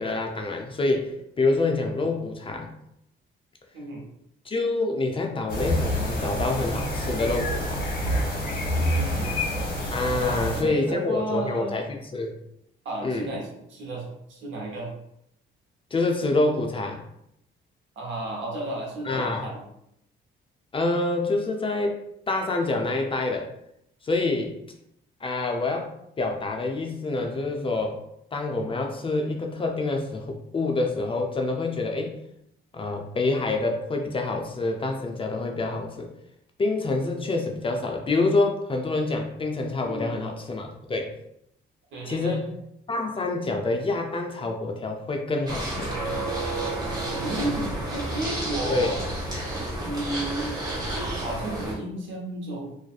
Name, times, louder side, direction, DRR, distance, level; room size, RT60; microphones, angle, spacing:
voice 1, 0.0-2.7 4.5-7.8 9.9-12.3 13.0-13.3 15.9-17.0 19.1-19.4 20.7-22.0 22.3-23.5 24.0-24.5 25.2-25.9 26.2-28.0 28.3-32.2 32.7-36.1 36.6-41.1 42.1-42.5 42.9-45.9 48.7-48.9, left 2 dB, 25° left, 2 dB, 0.4 m, -27 dB
sound 1, 5.5-10.6, equal, 45° left, 0.9 m, -27 dB
voice 2, 8.8-9.3 10.2-11.8 12.8-14.9 18.0-19.6 39.9-40.2 41.9-42.4 47.1-49.0 49.7-50.6 50.9-52.7, right 1 dB, 75° right, -2 dB, 0.9 m, -33 dB
sound 2, 45.5-51.7, right 2 dB, 20° right, 1.1 m, -30 dB
2.5 x 2.3 x 2.4 m, 0.77 s
cardioid pair, 90°, 20 cm